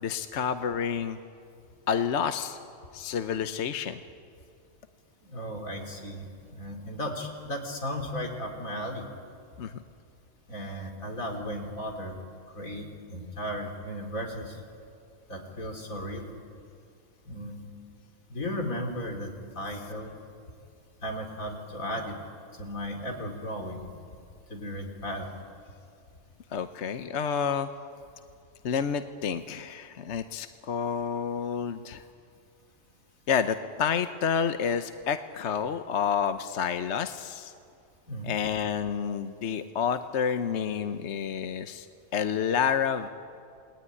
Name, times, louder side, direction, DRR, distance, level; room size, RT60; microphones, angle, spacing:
voice 1, 0.0-1.2 1.9-2.6 2.9-4.0 9.6-9.8 26.5-27.7 28.6-32.0 33.3-37.5 38.2-41.9 42.1-43.1, left 7 dB, 60° left, 9 dB, 1.1 m, -29 dB
voice 2, 5.2-9.1 10.5-12.2 12.5-14.6 15.3-16.3 17.3-17.7 18.3-20.2 21.0-22.2 22.6-23.9 24.5-25.3 38.1-38.4, equal, 85° left, 2 dB, 3.9 m, -35 dB
28.0 x 20.0 x 9.8 m, 2.4 s
omnidirectional pair, 1.4 m